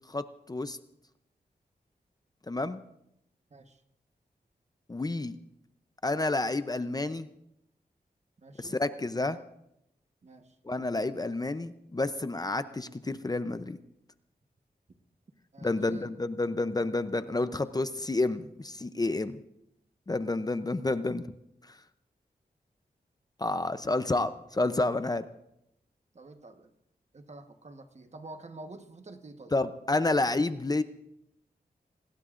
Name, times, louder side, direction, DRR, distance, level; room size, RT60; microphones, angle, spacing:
voice 1, 0.1-0.8 2.5-2.8 4.9-5.4 6.0-7.3 8.6-9.4 10.7-13.8 15.6-19.4 20.1-21.2 23.4-25.3 29.5-30.8, left 2 dB, 25° left, 11 dB, 0.6 m, -29 dB
voice 2, 3.5-3.8 8.4-8.8 10.2-10.6 14.9-15.0 15.5-16.1 26.1-26.7 27.1-29.5, right 2 dB, 45° right, 6 dB, 1.2 m, -48 dB
27.5 x 19.5 x 2.5 m, 0.80 s
wide cardioid pair, 120°, 16 cm